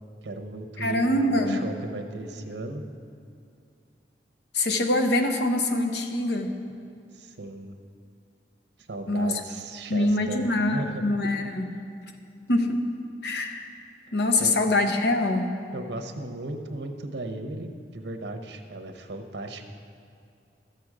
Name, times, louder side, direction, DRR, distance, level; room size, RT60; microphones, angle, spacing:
voice 1, 0.2-2.8 7.1-7.8 8.9-11.0 14.4-14.5 15.7-19.7, right 2 dB, 85° right, 6 dB, 0.9 m, -36 dB
voice 2, 0.8-1.6 4.5-6.5 9.1-9.4 9.9-11.8 12.5-12.9 13.2-13.7 14.1-15.5, left 2 dB, 70° left, 5 dB, 0.9 m, -24 dB
12.5 x 7.8 x 4.9 m, 2.5 s
head